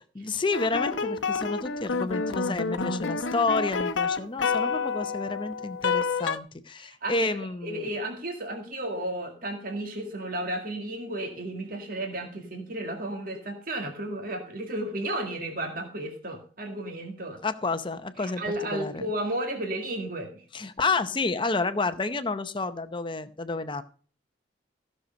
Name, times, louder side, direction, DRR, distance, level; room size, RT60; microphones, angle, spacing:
voice 1, 0.2-7.9 17.4-18.4 18.7-19.1 20.5-23.8, left 3 dB, 25° left, 11 dB, 0.7 m, -30 dB
sound 1, 0.5-6.4, left 5 dB, 85° left, 0.8 m, -29 dB
voice 2, 6.8-17.4 18.2-20.4, right 1 dB, 50° right, 3 dB, 2.1 m, -33 dB
15.0 x 6.6 x 5.2 m, 0.41 s
head